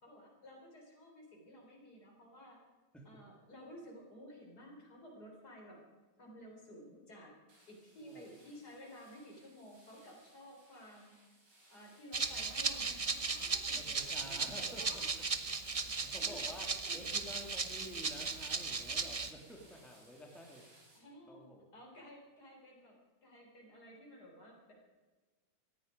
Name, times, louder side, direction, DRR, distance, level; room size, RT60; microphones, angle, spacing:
voice 1, 0.0-2.6 3.0-5.8 6.2-7.4 7.7-11.2 11.7-15.0 16.1-16.4 16.9-17.1 20.9-21.5 21.7-24.7, equal, 65° left, 0 dB, 4.7 m, -54 dB
sound 1, 7.5-21.0, right 1 dB, 80° right, 5.3 m, -64 dB
voice 2, 8.0-8.4 13.8-15.3 15.9-20.7 21.3-21.6, equal, ahead, 1 dB, 2.3 m, -51 dB
Rattle (instrument), 12.1-19.3, right 4 dB, 30° right, 0.6 m, -37 dB
18.0 x 14.0 x 5.2 m, 1.3 s
omnidirectional pair, 1.9 m